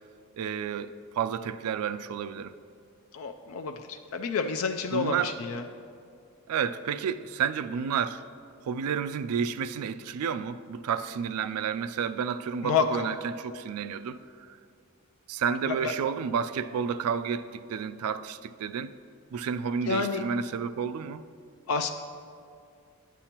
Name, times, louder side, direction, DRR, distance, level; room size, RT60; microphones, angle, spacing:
voice 1, 0.4-2.5 4.9-5.3 6.5-8.2 8.7-14.5 15.3-18.9 19.3-21.2, right 7 dB, 90° right, 0.3 m, -31 dB
voice 2, 3.1-5.6 12.6-13.0 15.7-15.9 19.9-20.2 21.7-21.9, left 5 dB, 75° left, 0.4 m, -29 dB
11.5 x 8.2 x 2.9 m
head